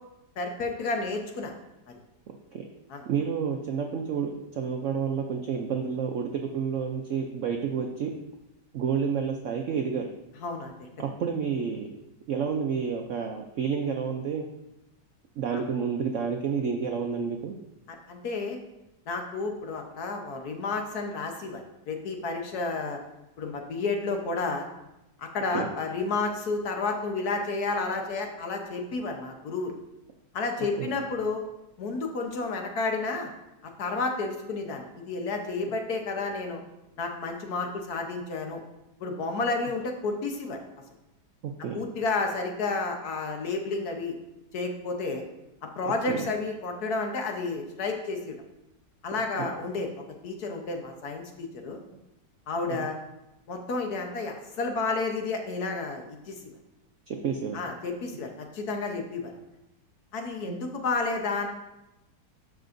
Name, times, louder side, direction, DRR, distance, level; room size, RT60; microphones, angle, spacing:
voice 1, 0.4-1.5 2.9-3.0 10.4-10.9 15.5-15.6 17.9-18.6 19.1-23.0 23.4-24.7 25.2-29.7 30.3-31.4 31.8-33.3 33.8-36.6 37.0-38.6 39.0-40.6 41.7-44.1 44.5-45.2 45.8-48.3 49.0-49.9 50.2-51.8 52.5-53.0 53.5-56.4 57.5-59.3 60.1-61.5, left 3 dB, 65° left, 3 dB, 1.4 m, -31 dB
voice 2, 3.1-8.1 8.7-10.1 11.0-11.9 12.3-14.5 15.4-17.5 25.5-25.7 30.8-30.9 41.4-41.8 46.1-46.3 49.4-49.5 52.7-52.9 57.1-57.6 60.5-60.6, right 6 dB, 70° right, 3 dB, 0.7 m, -30 dB
12.5 x 5.4 x 2.6 m, 0.93 s
omnidirectional pair, 1.9 m